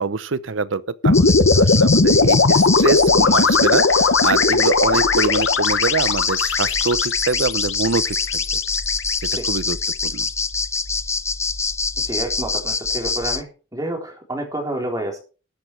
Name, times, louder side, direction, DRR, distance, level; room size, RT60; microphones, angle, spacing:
voice 1, 0.0-8.4 9.5-9.8 10.0-10.3, right 4 dB, 80° right, 0.8 m, -24 dB
sound 1, 1.0-9.3, left 3 dB, 85° left, 1.1 m, -18 dB
sound 2, 1.1-13.4, left 4 dB, 15° left, 0.6 m, -24 dB
voice 2, 12.0-15.2, right 1 dB, 20° right, 3.7 m, -29 dB
13.0 x 10.0 x 4.5 m
head